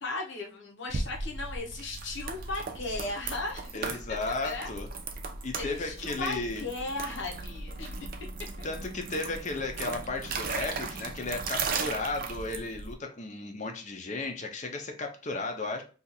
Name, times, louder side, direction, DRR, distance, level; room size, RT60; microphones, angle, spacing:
voice 1, 0.0-3.8 4.4-4.7 5.5-8.1 8.6-8.7, left 2 dB, 65° left, -1 dB, 0.8 m, -36 dB
sound 1, 0.9-12.9, right 4 dB, 45° right, 0.4 m, -37 dB
voice 2, 3.7-4.9 5.4-6.7 8.6-15.8, left 3 dB, 35° left, 4 dB, 0.5 m, -34 dB
2.7 x 2.4 x 4.0 m, 0.36 s
head